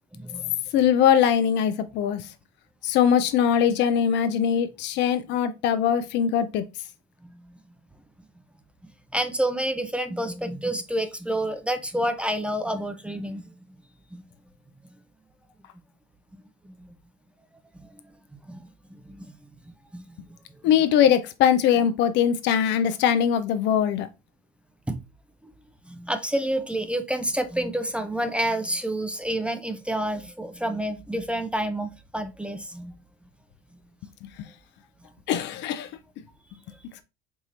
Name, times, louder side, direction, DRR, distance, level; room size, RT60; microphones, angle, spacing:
voice 1, 0.1-0.5 9.1-13.4 14.1-14.2 16.3-16.9 18.5-19.3 19.9-20.0 24.9-25.0 25.9-32.9, right 1 dB, 5° right, 0.5 m, -29 dB
voice 2, 0.7-2.3 2.8-6.6 20.6-24.1 34.2-34.3 35.3-35.9, left 8 dB, 60° left, 0.6 m, -21 dB
4.7 x 2.7 x 2.5 m
hypercardioid pair, 80°, 21 cm